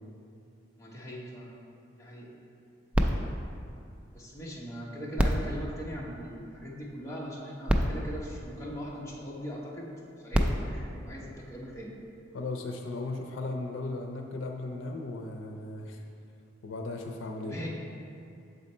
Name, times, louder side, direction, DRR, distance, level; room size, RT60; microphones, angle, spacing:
voice 1, 0.8-1.5 2.0-2.3 4.1-9.9 10.2-11.9 17.4-17.7, equal, 15° left, -4 dB, 1.0 m, -40 dB
sound 1, 2.9-4.6 5.1-6.7 7.4-7.5 7.7-9.2 10.1-11.9 12.6-12.7, equal, 5° right, 0.3 m, -31 dB
voice 2, 12.3-16.0 16.6-17.6, left 2 dB, 80° left, 3 dB, 0.5 m, -36 dB
7.0 x 4.1 x 4.3 m, 2.6 s
head